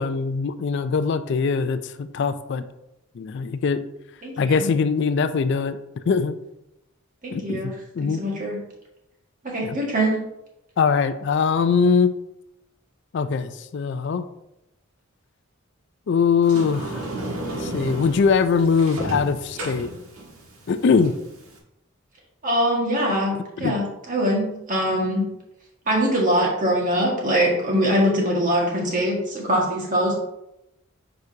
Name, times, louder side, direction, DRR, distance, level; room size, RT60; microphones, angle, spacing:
voice 1, 0.0-2.6 3.2-3.8 4.4-5.8 6.1-6.3 7.3-8.2 9.6-9.8 10.8-12.2 13.1-14.3 16.1-17.0 17.5-19.9 20.7-21.1 23.6-23.8, left 5 dB, 55° left, 11 dB, 0.3 m, -22 dB
voice 2, 4.2-4.7 7.2-7.7 8.2-8.6 9.4-10.1 22.4-23.3 23.6-25.2 25.9-30.1, equal, 40° right, -2 dB, 1.7 m, -22 dB
Sliding door, 16.4-21.6, right 1 dB, 80° right, 1.5 m, -33 dB
8.1 x 5.0 x 2.7 m, 0.86 s
head